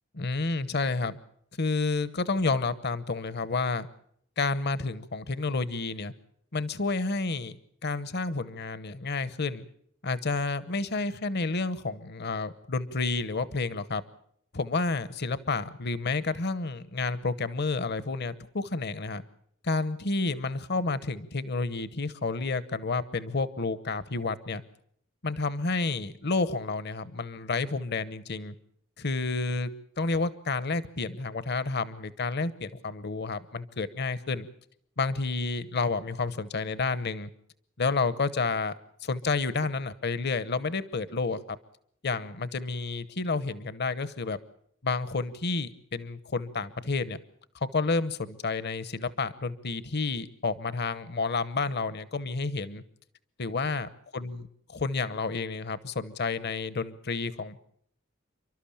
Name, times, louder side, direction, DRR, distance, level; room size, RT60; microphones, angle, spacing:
voice 1, 0.1-1.2 1.6-3.9 4.4-6.1 6.5-7.6 7.8-9.6 10.0-14.0 14.5-19.2 19.6-24.6 25.2-28.5 29.0-29.7 30.0-34.5 35.0-37.3 37.8-38.7 39.0-41.6 42.0-44.4 44.8-47.2 47.7-52.8 53.4-54.5 54.7-57.6, left 3 dB, 55° left, 16 dB, 0.9 m, -30 dB
29.5 x 12.5 x 8.7 m, 0.68 s
head